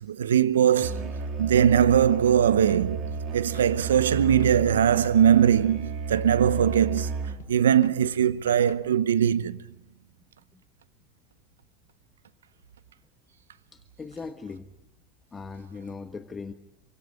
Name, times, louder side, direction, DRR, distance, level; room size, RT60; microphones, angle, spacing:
voice 1, 0.0-9.6, right 9 dB, 85° right, 0.8 m, -21 dB
Musical instrument, 0.8-7.6, right 5 dB, 55° right, 3.2 m, -33 dB
sound 1, 2.3-2.4 2.7-2.8 3.1-3.3 3.5-3.7 4.0-4.1 4.4-4.6 4.8-5.4 5.7-5.8 6.1-6.3 6.5-6.7 7.0-7.1 7.4-7.5 7.8-8.0 8.3-8.8, left 10 dB, 80° left, 1.5 m, -49 dB
voice 2, 13.7-14.7 15.3-16.5, left 4 dB, 25° left, 1.4 m, -39 dB
26.5 x 25.0 x 5.6 m
hypercardioid pair, 80°, 0 cm